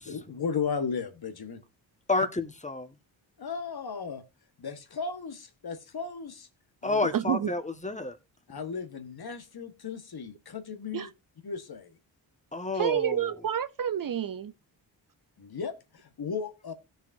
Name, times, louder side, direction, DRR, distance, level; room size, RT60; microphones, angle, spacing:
voice 1, 0.0-1.6 3.4-4.2 4.6-6.5 6.8-7.0 8.5-11.1 11.4-11.9 15.4-16.7, left 5 dB, 50° left, 1.5 m, -35 dB
voice 2, 2.1-2.9 6.8-8.2 12.5-13.3, left 2 dB, 15° left, 1.6 m, -29 dB
voice 3, 7.1-7.5 10.9-11.1 12.7-14.5, right 9 dB, 45° right, 0.6 m, -29 dB
17.0 x 6.6 x 2.7 m
cardioid pair, 55°, 48 cm